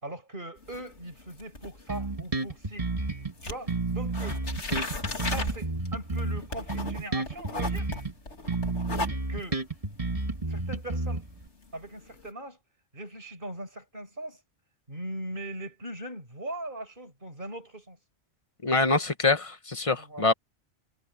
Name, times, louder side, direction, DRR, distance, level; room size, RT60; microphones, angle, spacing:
voice 1, 0.0-2.9 3.4-4.4 5.2-7.9 9.3-9.6 10.5-11.2 11.7-12.6 12.9-14.4 14.9-18.0 20.0-20.3, right 1 dB, 45° right, 5.8 m, -40 dB
sound 1, 0.6-3.1 3.4-12.3, left 2 dB, 75° left, 2.9 m, -37 dB
Bass guitar, 1.9-3.3 3.7-8.1 8.5-11.5, right 3 dB, 30° right, 1.9 m, -31 dB
voice 2, 18.6-20.3, left 3 dB, 30° left, 1.2 m, -25 dB
omnidirectional pair, 1.2 m